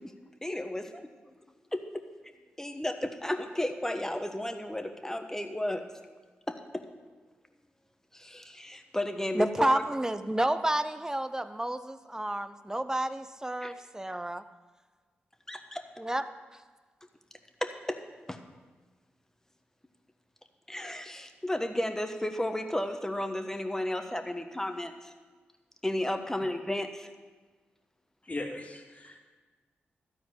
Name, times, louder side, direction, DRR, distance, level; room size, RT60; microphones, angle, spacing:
voice 1, 0.4-0.9 1.7-1.8 2.6-5.8 6.5-6.8 8.1-9.8 13.6-13.7 15.5-15.8 17.6-18.0 18.3-18.4 20.7-25.1 25.8-27.1, left 1 dB, 10° left, 6 dB, 1.2 m, -33 dB
voice 2, 9.3-14.4 16.0-16.2, right 1 dB, 15° right, 11 dB, 0.7 m, -30 dB
voice 3, 28.2-29.2, left 2 dB, 30° left, 1 dB, 2.1 m, -38 dB
12.5 x 4.7 x 8.3 m, 1.4 s
supercardioid pair, 40°, 4 cm